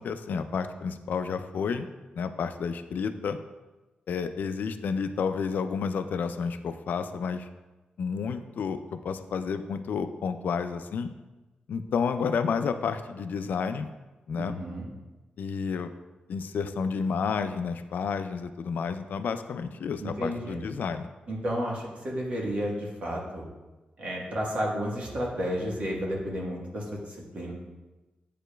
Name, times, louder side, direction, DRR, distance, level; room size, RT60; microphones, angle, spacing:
voice 1, 0.0-1.9 2.2-3.4 4.1-7.5 8.0-11.1 11.7-13.9 14.3-14.6 15.4-15.9 16.3-21.1, left 6 dB, 80° left, 9 dB, 0.3 m, -30 dB
voice 2, 14.4-14.9 20.0-20.6 21.3-23.4 24.0-27.5, equal, 50° right, -2 dB, 1.3 m, -32 dB
9.0 x 4.9 x 2.3 m, 1.1 s
wide cardioid pair, 160°, 3 cm